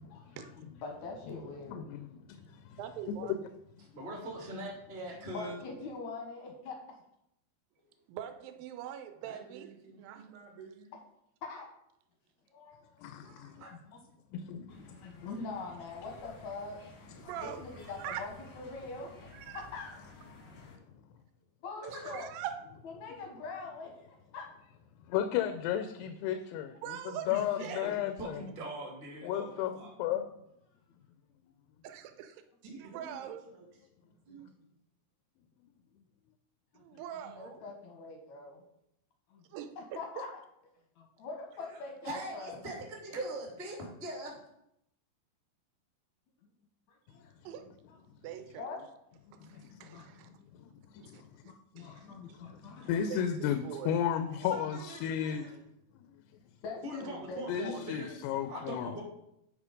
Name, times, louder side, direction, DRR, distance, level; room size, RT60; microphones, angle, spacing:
voice 1, 0.1-0.5 0.8-2.0 2.5-2.6 3.8-3.9 4.4-4.5 5.2-6.8 7.8-7.9 11.4-11.7 12.5-13.4 13.7-14.0 14.7-16.8 17.4-19.2 19.5-20.0 21.6-22.3 22.8-24.5 35.9-36.0 36.9-38.6 39.3-39.5 39.8-40.4 41.0-42.6 46.4-46.5 46.9-47.4 47.9-48.0 48.6-48.8 49.5-50.1 50.9-51.1 51.4-53.3 54.6-54.8 56.6-58.2, left 3 dB, 70° left, 2 dB, 1.8 m, -44 dB
voice 2, 1.7-2.4 2.7-2.8 3.3-3.4 13.0-13.6 14.3-14.7 20.5-20.8 25.1-28.4 29.2-29.7 30.0-30.2 49.4-50.0 50.5-50.7 51.8-55.4 57.5-59.0, left 9 dB, 85° left, 9 dB, 2.7 m, -34 dB
voice 3, 2.8-3.3 8.1-9.7 10.0-10.3 13.2-13.6 17.2-17.6 18.0-18.2 19.4-19.7 22.1-22.6 26.8-27.8 31.8-32.4 32.9-33.4 36.8-37.6 39.5-39.7 40.2-40.3 47.4-47.7 48.2-48.8 49.4-50.3 51.0-52.1 53.1-54.0, right 10 dB, 75° right, 9 dB, 2.2 m, -43 dB
voice 4, 3.9-5.6 13.6-13.7 21.8-22.1 27.2-29.9 42.0-44.4 56.8-58.1 58.5-59.0, right 1 dB, 20° right, -2 dB, 1.6 m, -41 dB
voice 5, 9.2-10.9 32.6-33.7 34.1-34.8 54.3-55.6, right 5 dB, 60° right, 1 dB, 2.1 m, -51 dB
sound 1, 14.7-20.8, left 2 dB, 50° left, 1.4 m, -54 dB
8.6 x 4.9 x 5.1 m, 0.79 s
omnidirectional pair, 4.7 m